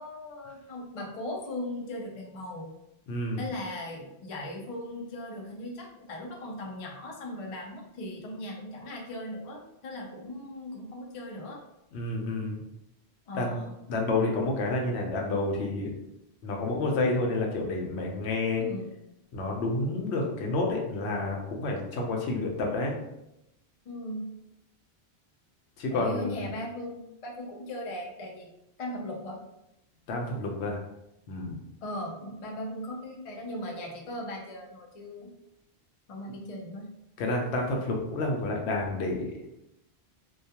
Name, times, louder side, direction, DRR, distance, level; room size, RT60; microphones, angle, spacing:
voice 1, 0.0-2.7 3.4-11.6 13.3-13.7 18.6-18.9 23.9-24.3 25.9-28.5 28.8-29.4 31.8-35.3 36.1-36.9, left 1 dB, 50° left, 0 dB, 0.4 m, -38 dB
voice 2, 3.1-3.4 11.9-12.6 13.3-13.6 13.9-15.9 16.4-18.6 19.3-23.0 25.8-26.5 30.1-30.8 31.3-31.6 37.2-39.5, left 2 dB, 90° left, 0 dB, 0.9 m, -29 dB
2.3 x 2.2 x 2.7 m, 0.86 s
omnidirectional pair, 1.1 m